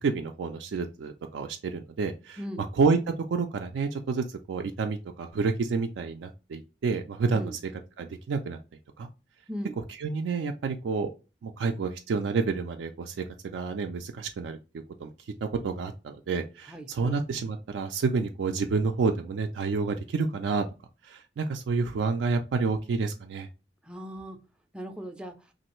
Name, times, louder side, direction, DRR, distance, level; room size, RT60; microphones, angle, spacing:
voice 1, 0.0-2.4 2.8-3.0 3.3-7.5 8.0-8.6 9.0-9.1 10.0-11.1 11.4-13.2 13.5-14.6 15.0-15.1 15.6-20.6 21.0-23.5, right 4 dB, 80° right, 0.3 m, -29 dB
voice 2, 16.7-17.2 23.8-24.4 24.7-25.3, equal, 5° right, 0.3 m, -38 dB
3.1 x 2.5 x 2.9 m
head